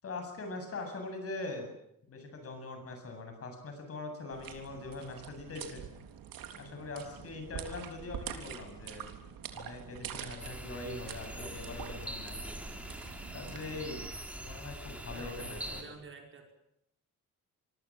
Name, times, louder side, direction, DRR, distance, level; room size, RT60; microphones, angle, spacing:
voice 1, 0.0-1.7 2.1-5.9 6.5-9.1 9.5-12.4 13.3-14.0 14.3-15.9, left 3 dB, 45° left, 5 dB, 8.0 m, -42 dB
sound 1, 4.3-14.1, right 8 dB, 85° right, 3.6 m, -46 dB
sound 2, 10.4-15.8, right 1 dB, 5° right, 3.6 m, -43 dB
voice 2, 15.1-16.5, right 4 dB, 35° right, 3 dB, 5.4 m, -49 dB
26.5 x 23.5 x 7.6 m, 0.77 s
cardioid pair, 150°, 34 cm